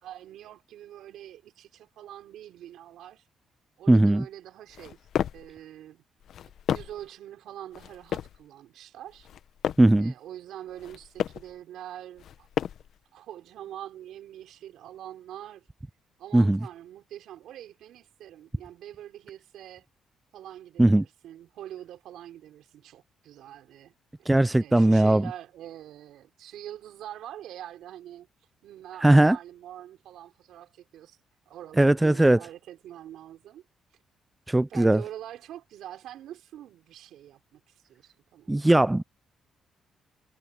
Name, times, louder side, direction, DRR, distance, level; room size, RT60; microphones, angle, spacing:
voice 1, 0.0-3.2 3.8-5.0 5.3-6.0 6.7-9.3 10.0-12.5 13.1-15.7 16.2-19.9 20.3-28.3 28.6-31.2 31.5-33.6 34.7-38.7, right 12 dB, 80° right, 4.5 m, -44 dB
voice 2, 3.9-4.2 9.8-10.1 16.3-16.6 20.8-21.0 24.3-25.3 29.0-29.4 31.8-32.4 34.5-35.0 38.5-39.0, right 1 dB, 10° right, 0.3 m, -19 dB
sound 1, 4.7-5.5 6.2-7.1 7.7-8.4 9.1-10.0 10.7-11.5 12.2-13.0, left 9 dB, 70° left, 1.0 m, -33 dB
cardioid pair, 90°, 0 cm